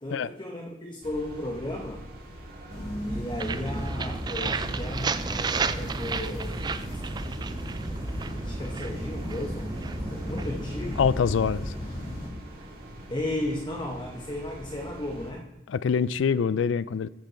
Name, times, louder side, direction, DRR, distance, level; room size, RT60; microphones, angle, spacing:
voice 1, 0.0-2.0 3.1-6.7 8.4-11.0 13.1-15.5, left 1 dB, 25° left, 0.9 m, -35 dB
sound 1, 1.0-15.3, right 1 dB, 55° right, 1.9 m, -44 dB
sound 2, 2.7-12.3, equal, 50° left, 2.4 m, -36 dB
sound 3, 3.4-13.2, right 4 dB, 25° right, 0.3 m, -34 dB
voice 2, 11.0-11.7 15.7-17.1, left 6 dB, 90° left, 0.4 m, -25 dB
14.5 x 5.3 x 4.5 m
head